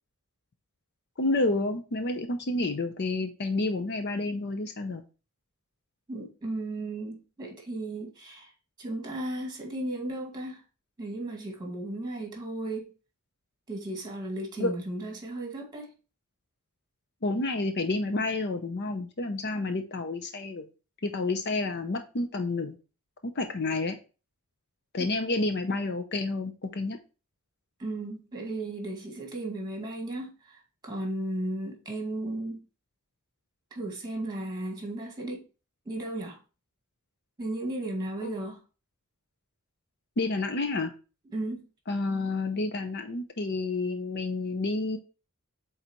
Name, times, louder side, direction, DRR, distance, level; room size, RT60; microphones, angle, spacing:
voice 1, 1.2-5.0 14.6-14.8 17.2-20.7 21.0-22.8 23.4-24.0 24.9-27.0 38.2-38.3 40.2-40.9 41.9-45.0, left 2 dB, 50° left, 0.6 m, -29 dB
voice 2, 6.1-8.5 8.8-10.6 11.0-12.9 13.7-15.9 25.0-25.1 27.8-32.6 33.7-35.5 35.9-36.4 37.4-38.6 41.3-41.6, right 1 dB, 20° right, 2.0 m, -35 dB
8.1 x 4.0 x 3.0 m
head